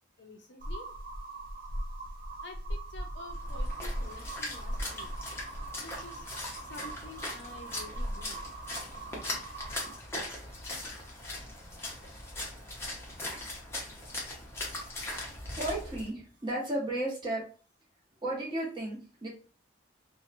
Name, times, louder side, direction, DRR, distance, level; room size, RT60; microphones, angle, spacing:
voice 1, 0.2-0.9 2.4-5.1 5.7-6.3 6.6-8.5, left 2 dB, 60° left, 3 dB, 0.5 m, -49 dB
sound 1, 0.6-10.0, right 1 dB, 45° right, 0.4 m, -39 dB
Splash splatter, 3.3-16.1, left 1 dB, 15° left, 0.6 m, -40 dB
voice 2, 15.6-17.4 18.2-19.3, right 1 dB, 25° right, -4 dB, 0.8 m, -33 dB
2.7 x 2.1 x 2.5 m, 0.38 s
head